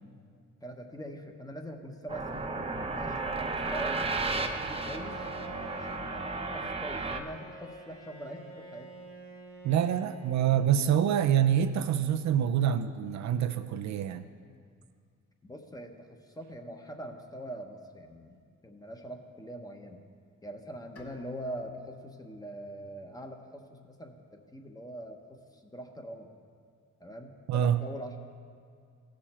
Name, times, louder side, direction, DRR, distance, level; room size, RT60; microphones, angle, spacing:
voice 1, 0.6-4.0 4.4-5.2 5.5-8.9 15.4-20.0 20.4-26.3 27.0-28.1, right 1 dB, 10° left, 4 dB, 1.0 m, -43 dB
sound 1, 2.1-7.2, right 3 dB, 20° right, 0.8 m, -33 dB
Bowed string instrument, 4.7-10.9, right 1 dB, 35° left, 1.9 m, -48 dB
voice 2, 9.6-14.2 27.5-27.8, right 9 dB, 65° right, 8 dB, 0.5 m, -26 dB
Bowed string instrument 2, 21.0-24.2, left 8 dB, 50° left, 1.5 m, -54 dB
15.5 x 6.4 x 4.3 m, 2.2 s
cardioid pair, 90°, 30 cm